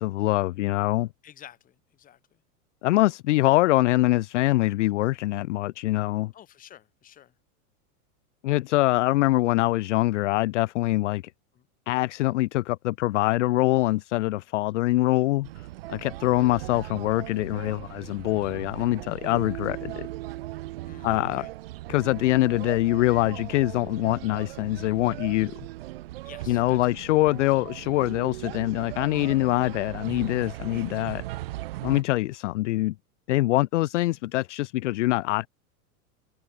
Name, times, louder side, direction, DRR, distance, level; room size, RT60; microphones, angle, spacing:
voice 1, 0.0-1.1 2.8-6.3 8.4-11.2 11.9-15.5 15.9-20.1 21.0-21.4 21.9-25.5 26.5-31.2 31.8-32.9 33.3-35.5, left 18 dB, 55° left, 0.5 m, -24 dB
voice 2, 1.2-2.4 6.3-7.3 11.5-11.7 20.9-21.5 26.2-27.2 31.8-32.1, left 11 dB, 20° left, 4.0 m, -51 dB
sound 1, 15.4-32.0, right 17 dB, 45° right, 0.5 m, -38 dB
supercardioid pair, 170°, 44 cm